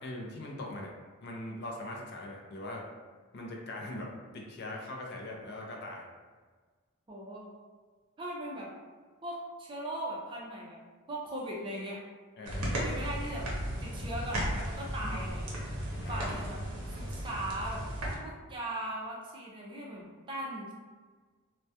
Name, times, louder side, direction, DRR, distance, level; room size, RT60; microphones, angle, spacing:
voice 1, 0.0-0.9 1.2-2.8 3.3-6.1 12.4-12.8 15.0-15.2 16.0-16.3, left 1 dB, 50° left, -1 dB, 0.4 m, -41 dB
voice 2, 7.1-7.5 8.2-8.7 9.2-10.8 11.1-12.0 12.8-13.5 13.8-15.5 16.1-16.6 16.9-17.8 18.2-20.7, right 1 dB, 20° right, -3 dB, 0.3 m, -39 dB
sound 1, 12.4-18.2, equal, 80° right, 0.6 m, -35 dB
2.2 x 2.1 x 2.7 m, 1.5 s
head